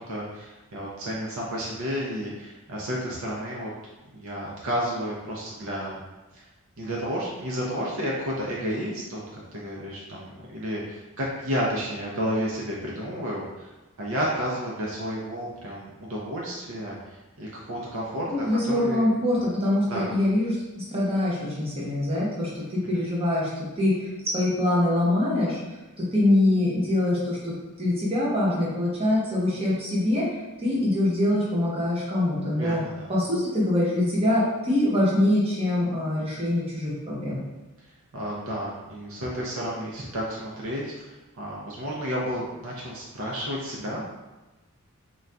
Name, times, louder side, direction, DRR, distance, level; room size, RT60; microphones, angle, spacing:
voice 1, 0.0-3.7 4.1-6.0 6.3-6.4 6.8-13.7 14.0-18.3 18.6-19.1 19.9-20.1 22.9-23.0 32.6-33.1 38.1-44.0, equal, 65° right, -4 dB, 0.5 m, -31 dB
voice 2, 18.3-23.5 23.8-24.1 24.3-25.6 26.0-27.5 27.8-30.3 30.6-32.8 33.1-37.4, left 1 dB, 25° right, -7 dB, 0.8 m, -24 dB
3.8 x 2.2 x 2.2 m, 1.1 s
head